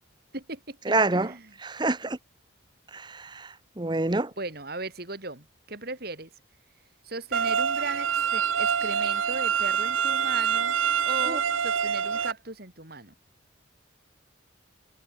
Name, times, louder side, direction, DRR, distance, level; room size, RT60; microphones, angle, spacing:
voice 1, 0.3-0.8 1.1-1.5 4.4-6.3 7.0-10.8 11.1-13.1, right 2 dB, 50° right, 3.5 m, -37 dB
voice 2, 0.9-1.3 1.6-2.2 2.9-3.5 3.8-4.3 11.3-11.4, right 2 dB, 20° right, 0.8 m, -26 dB
sound 1, 7.3-12.3, right 7 dB, 90° right, 1.2 m, -26 dB
head